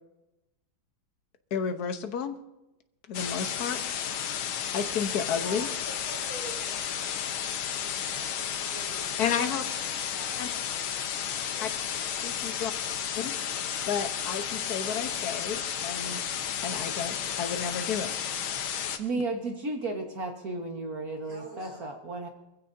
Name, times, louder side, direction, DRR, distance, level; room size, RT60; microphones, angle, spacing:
voice 1, 1.5-2.4 3.1-3.8 4.7-5.7 9.2-9.7 10.4-10.5 11.6-11.7 12.2-12.7 13.1-13.3 13.9-16.2 16.6-18.1, left 7 dB, 55° left, 8 dB, 1.4 m, -31 dB
sound 1, 3.1-19.0, left 8 dB, 80° left, 1.8 m, -33 dB
voice 2, 5.4-7.2 7.7-8.3 8.7-9.4 9.7-10.4 11.3-11.7 21.3-21.9, right 2 dB, 85° right, 0 dB, 5.8 m, -46 dB
voice 3, 19.0-22.3, right 3 dB, 50° right, 2 dB, 1.8 m, -33 dB
23.0 x 15.5 x 2.7 m, 0.95 s
omnidirectional pair, 2.3 m